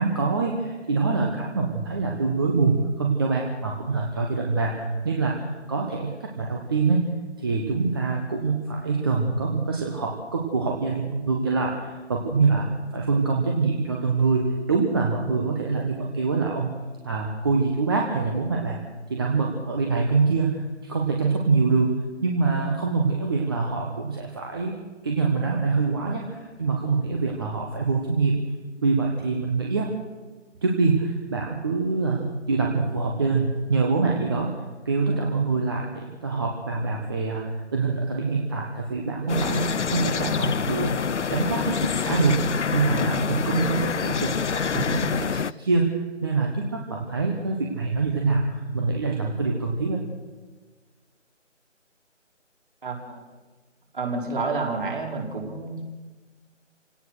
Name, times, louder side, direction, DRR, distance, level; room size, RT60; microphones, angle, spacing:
voice 1, 0.0-7.1 7.4-16.7 17.0-18.8 19.1-24.7 25.0-28.5 28.8-29.9 30.6-34.5 34.8-41.0 41.3-50.0, right 4 dB, 20° right, 0 dB, 1.3 m, -25 dB
sound 1, 39.3-45.5, left 6 dB, 70° left, 0.6 m, -26 dB
voice 2, 52.8-53.2 53.9-55.8, right 3 dB, 45° right, 1 dB, 4.5 m, -29 dB
27.0 x 17.5 x 6.5 m, 1.3 s
figure-of-eight pair, 160°, 37 cm